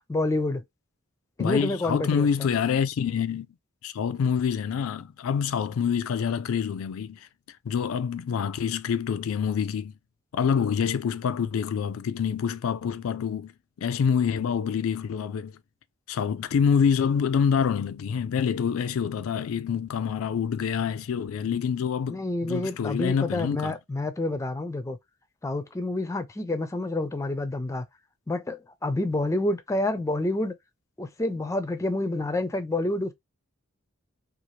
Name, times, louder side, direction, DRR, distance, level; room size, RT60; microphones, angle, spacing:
voice 1, 0.1-0.6 1.4-2.3 22.1-25.0 25.4-27.8 28.3-30.5 31.0-33.1, left 2 dB, 15° left, 0.4 m, -28 dB
voice 2, 1.4-3.5 3.8-7.2 7.7-9.9 10.3-13.5 13.8-15.5 16.1-23.8, left 7 dB, 80° left, 0.4 m, -26 dB
2.7 x 2.4 x 3.1 m
head